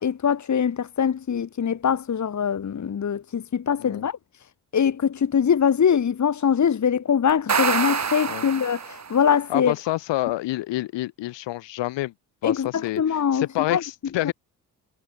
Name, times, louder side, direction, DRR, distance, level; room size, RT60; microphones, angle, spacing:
voice 1, 0.0-4.2 4.7-9.7 12.4-13.4 13.7-13.8 14.2-14.3, left 7 dB, 40° left, 1.6 m, -23 dB
sound 1, 7.3-9.3, right 6 dB, 40° right, 2.7 m, -26 dB
voice 2, 9.5-12.1 12.4-14.3, left 17 dB, 85° left, 5.0 m, -28 dB
supercardioid pair, 60°, 42 cm